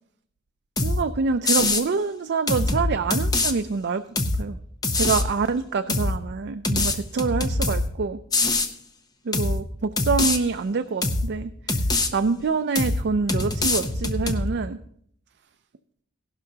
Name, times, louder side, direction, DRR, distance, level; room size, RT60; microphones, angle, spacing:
sound 1, 0.8-1.0 1.4-1.8 2.5-3.5 4.2-4.4 4.8-5.3 5.9-6.2 6.6-7.9 8.3-8.7 9.3-9.6 10.0-10.4 11.0-11.3 11.7-12.1 12.7-13.0 13.3-14.5, left 2 dB, 20° left, 0.8 m, -23 dB
voice 1, 0.8-4.0 4.4-4.6 4.9-8.2 9.3-11.5 12.1-14.8, right 4 dB, 55° right, 9 dB, 0.4 m, -26 dB
16.5 x 12.0 x 2.8 m, 0.67 s
head